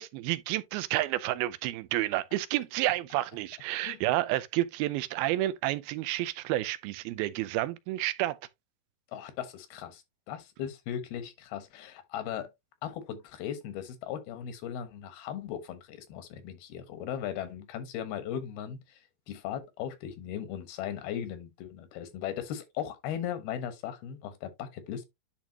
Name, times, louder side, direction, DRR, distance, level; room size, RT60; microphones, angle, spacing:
voice 1, 0.0-8.4, right 16 dB, 85° right, 2.5 m, -30 dB
voice 2, 9.1-12.5 12.8-19.0 19.3-25.1, left 9 dB, 85° left, 3.2 m, -38 dB
10.5 x 4.1 x 2.9 m
omnidirectional pair, 4.3 m